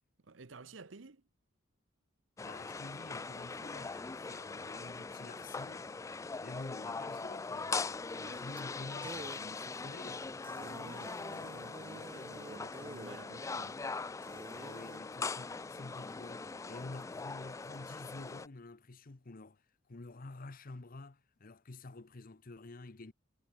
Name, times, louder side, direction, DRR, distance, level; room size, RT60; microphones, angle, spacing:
voice 1, 0.2-1.2 8.1-8.5 10.6-13.8 14.6-14.7, right 3 dB, 75° right, 1.0 m, -53 dB
voice 2, 2.4-5.9 6.4-8.1 8.3-10.4 14.5-19.6 19.9-23.1, left 2 dB, 45° left, 0.9 m, -49 dB
sound 1, 2.4-18.5, left 4 dB, 15° left, 0.3 m, -41 dB
sound 2, 7.9-8.3 8.6-8.7 9.0-9.4 9.9-10.0 10.4-13.2 13.7-13.8 14.2-15.0, right 2 dB, 25° right, 1.1 m, -49 dB
sound 3, 10.2-11.8 13.6-17.2, right 1 dB, 50° right, 3.5 m, -69 dB
head